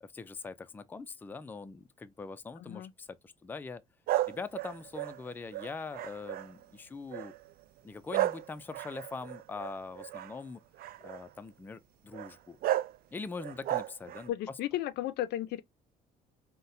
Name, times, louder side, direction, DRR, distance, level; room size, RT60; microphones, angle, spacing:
voice 1, 0.0-3.8 4.3-7.3 7.8-10.6 11.0-12.6 13.1-14.3, left 4 dB, 10° left, 0.3 m, -42 dB
voice 2, 2.6-2.9 14.3-15.6, left 13 dB, 75° left, 0.4 m, -34 dB
sound 1, 4.1-6.6 7.1-7.5 8.1-10.3 10.8-11.2 12.1-12.3 12.6-13.0 13.4-14.3, right 14 dB, 60° right, 0.4 m, -33 dB
3.9 x 2.1 x 2.6 m
cardioid pair, 110°, 17 cm